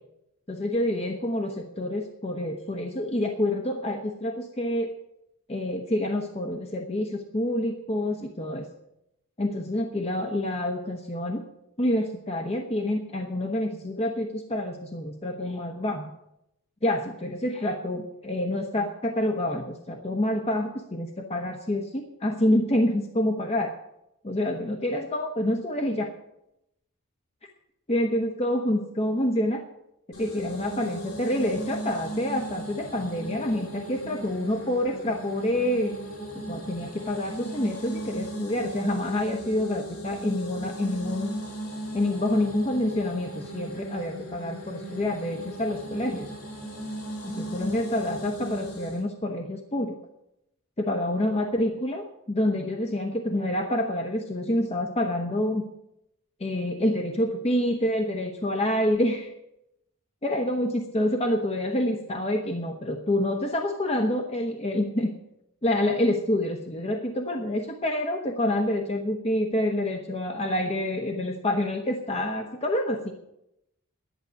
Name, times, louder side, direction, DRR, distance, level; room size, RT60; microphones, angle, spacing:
voice 1, 0.5-4.9 5.5-8.7 9.4-11.4 11.8-16.1 16.8-23.7 24.2-26.1 27.9-29.6 30.2-35.9 36.3-41.4 41.9-46.3 47.2-50.0 50.8-55.7 56.4-59.3 60.2-65.1 65.6-73.1, left 1 dB, 30° left, 3 dB, 1.1 m, -27 dB
sound 1, 30.1-49.0, right 1 dB, 70° left, 4.3 m, -37 dB
11.5 x 7.7 x 9.4 m, 0.82 s
head